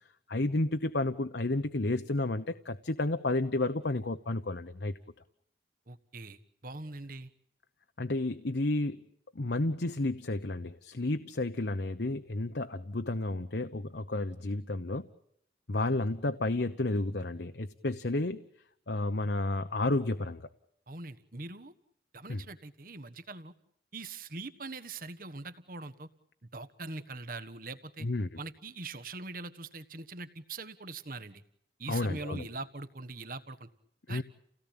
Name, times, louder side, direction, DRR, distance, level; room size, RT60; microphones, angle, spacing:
voice 1, 0.3-4.9 8.0-9.0 9.3-15.1 15.7-18.5 18.9-20.5 22.3-22.4 28.0-28.3 31.9-32.5 34.1-34.2, left 2 dB, 65° left, 9 dB, 1.0 m, -31 dB
voice 2, 5.9-7.3 20.9-21.7 22.1-23.5 23.9-26.1 26.5-28.1 28.4-31.4 31.8-33.7 34.1-34.2, right 3 dB, 50° right, 13 dB, 1.4 m, -42 dB
30.0 x 17.5 x 9.0 m, 0.73 s
head